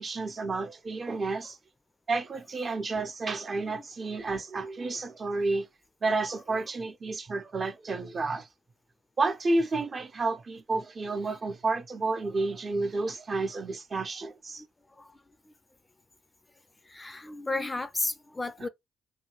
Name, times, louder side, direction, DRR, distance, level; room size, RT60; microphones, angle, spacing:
voice 1, 0.0-1.6 2.1-5.7 6.0-8.5 9.2-14.6 18.6-18.7, right 3 dB, 45° right, 0.7 m, -31 dB
voice 2, 16.9-18.7, left 2 dB, 25° left, 0.4 m, -33 dB
2.8 x 2.7 x 2.9 m
hypercardioid pair, 45°, 0 cm